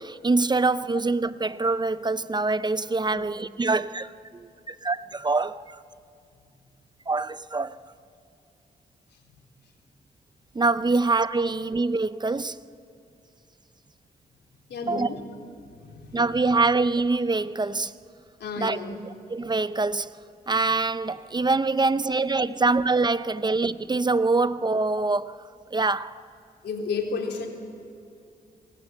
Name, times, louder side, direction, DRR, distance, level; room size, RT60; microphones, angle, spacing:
voice 1, 0.0-5.8 7.1-7.8 10.5-12.7 14.9-15.1 16.1-17.9 18.6-18.8 19.3-20.1 20.5-25.4 25.7-26.2, right 3 dB, 25° right, 0.6 m, -24 dB
voice 2, 14.7-15.2 15.7-16.5 18.4-19.0 21.9-22.1 23.4-23.5 26.6-27.5, left 4 dB, 85° left, 3.8 m, -33 dB
27.5 x 21.0 x 8.8 m
cardioid pair, 85°, 17 cm